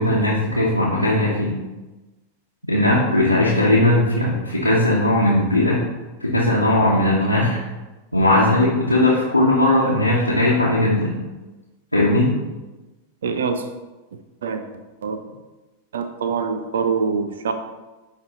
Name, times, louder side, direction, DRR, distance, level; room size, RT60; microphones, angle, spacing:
voice 1, 0.0-1.5 2.7-5.8 6.2-7.6 8.1-11.1 11.9-12.3, left 1 dB, 90° left, -7 dB, 1.1 m, -18 dB
voice 2, 13.2-13.6 14.4-14.6 15.0-15.2 15.9-17.5, right 5 dB, 65° right, 8 dB, 0.6 m, -24 dB
9.3 x 3.2 x 4.0 m, 1.1 s
figure-of-eight pair, 90°, 0 cm